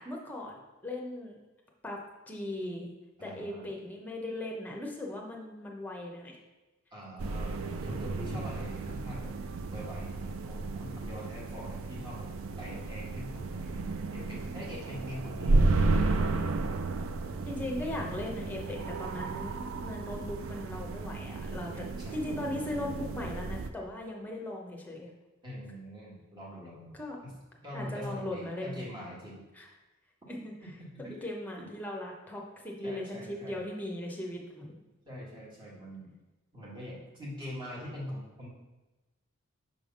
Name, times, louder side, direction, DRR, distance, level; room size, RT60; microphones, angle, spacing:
voice 1, 0.0-1.4 1.8-2.0 2.3-2.9 3.2-6.4 17.5-21.9 22.1-25.1 26.9-27.2 27.7-28.8 29.5-29.7 30.3-30.5 31.0-34.8, left 1 dB, 10° left, 0 dB, 0.8 m, -38 dB
voice 2, 3.2-3.7 6.9-9.3 9.7-12.3 12.6-13.8 14.1-16.3 21.6-22.2 25.4-27.3 27.6-29.4 30.8-31.2 31.6-31.7 32.8-33.6 35.0-36.1 36.5-38.5, equal, 20° right, -5 dB, 1.6 m, -43 dB
sound 1, 7.2-23.7, right 3 dB, 70° right, 0.4 m, -33 dB
5.8 x 3.4 x 5.2 m, 1.1 s
head